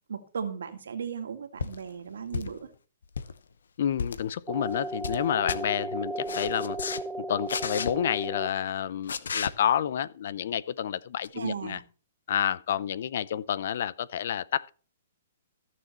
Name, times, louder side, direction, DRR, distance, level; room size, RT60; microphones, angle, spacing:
voice 1, 0.1-2.7 11.3-11.8, right 6 dB, 85° right, 2.1 m, -36 dB
sound 1, 1.6-1.8 2.3-2.7 3.0-3.3 4.0-4.2 4.7-5.2 5.5-5.6 6.3-7.0 7.5-7.9 9.1-9.5 11.2-11.3, left 6 dB, 85° left, 0.9 m, -33 dB
voice 2, 3.8-6.8 7.3-11.8 12.3-14.7, left 9 dB, 60° left, 0.6 m, -29 dB
sound 2, 4.5-8.5, right 1 dB, 5° right, 0.9 m, -35 dB
14.5 x 6.9 x 4.3 m
hypercardioid pair, 150°, 0 cm